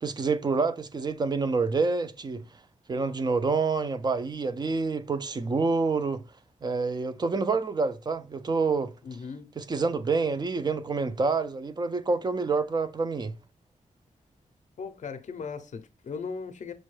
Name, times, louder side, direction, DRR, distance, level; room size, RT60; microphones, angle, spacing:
voice 1, 0.0-2.4 2.9-6.2 6.6-8.9 9.6-13.3, right 4 dB, 30° right, 0.4 m, -27 dB
voice 2, 9.0-9.5 14.8-16.7, left 5 dB, 65° left, 0.5 m, -37 dB
6.1 x 2.2 x 3.1 m
wide cardioid pair, 130°, 13 cm